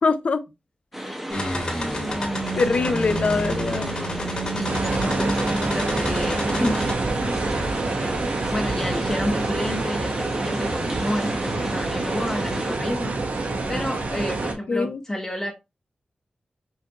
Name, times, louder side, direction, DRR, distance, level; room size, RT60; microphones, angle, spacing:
voice 1, 0.0-0.4 2.5-3.9 14.7-15.0, left 4 dB, 50° left, 0.5 m, -22 dB
sound 1, 0.9-12.8, right 1 dB, 10° right, 0.7 m, -34 dB
voice 2, 1.1-1.4 2.6-3.1 4.5-8.2 8.5-15.5, left 1 dB, 20° left, 0.9 m, -31 dB
sound 2, 1.3-6.9, equal, 35° left, 1.6 m, -28 dB
sound 3, 4.6-14.5, right 3 dB, 75° right, 1.0 m, -27 dB
5.7 x 2.5 x 2.8 m
wide cardioid pair, 135°, 3 cm